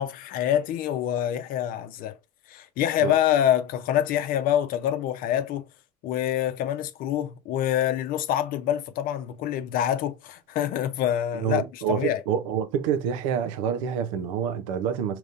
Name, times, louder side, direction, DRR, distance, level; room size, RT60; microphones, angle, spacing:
voice 1, 0.0-2.2 2.5-5.7 6.0-12.2, left 11 dB, 65° left, 0.6 m, -26 dB
voice 2, 11.3-15.2, right 8 dB, 90° right, 0.6 m, -27 dB
5.2 x 2.9 x 2.5 m
supercardioid pair, 90°, 16 cm